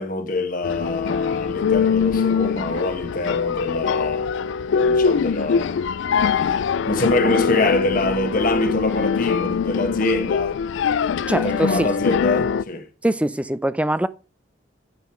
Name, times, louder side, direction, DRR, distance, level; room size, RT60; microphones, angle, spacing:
voice 1, 0.0-4.3 4.8-5.8 6.9-10.6 11.3-12.9, left 2 dB, 45° left, 1.4 m, -25 dB
sound 1, 0.6-12.6, left 6 dB, 75° left, 0.4 m, -22 dB
voice 2, 11.3-11.9 13.0-14.1, right 1 dB, 5° right, 0.4 m, -22 dB
9.3 x 5.8 x 4.4 m
head